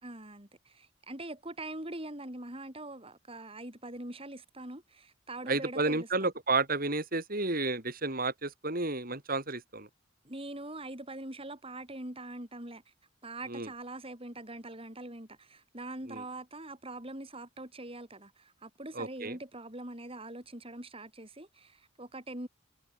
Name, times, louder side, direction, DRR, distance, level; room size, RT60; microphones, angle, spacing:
voice 1, 0.0-6.1 10.3-12.8 13.2-22.5, right 2 dB, 30° right, 5.2 m, -43 dB
voice 2, 5.5-9.9 13.5-13.7 16.1-16.2 18.9-19.4, right 3 dB, 45° right, 5.1 m, -31 dB
head